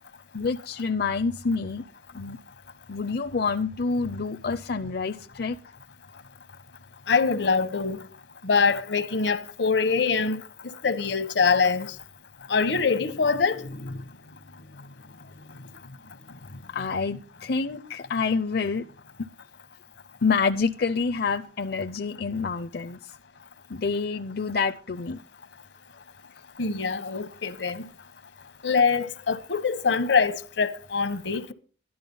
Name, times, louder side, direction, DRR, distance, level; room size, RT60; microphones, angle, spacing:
voice 1, 0.3-1.9 2.1-2.4 2.9-5.6 16.7-18.9 19.2-19.3 20.2-23.1 23.7-25.2, left 4 dB, 60° left, 0.6 m, -27 dB
voice 2, 7.1-8.0 8.4-11.9 12.5-14.0 26.6-27.9 28.6-31.5, left 5 dB, 80° left, 1.1 m, -24 dB
13.0 x 11.0 x 5.3 m
head